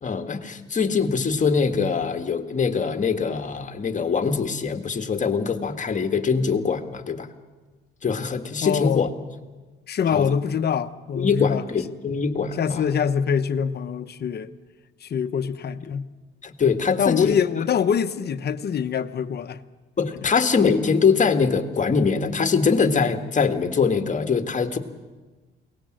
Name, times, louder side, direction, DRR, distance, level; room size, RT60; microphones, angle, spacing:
voice 1, 0.0-7.3 8.0-9.1 10.1-10.3 11.2-12.9 16.4-17.4 20.0-24.8, left 5 dB, 40° left, 1.7 m, -23 dB
voice 2, 8.6-9.1 9.9-11.6 12.6-14.5 15.0-16.0 17.0-19.6, left 7 dB, 55° left, 0.9 m, -24 dB
22.5 x 18.5 x 7.7 m
cardioid pair, 90°, 20 cm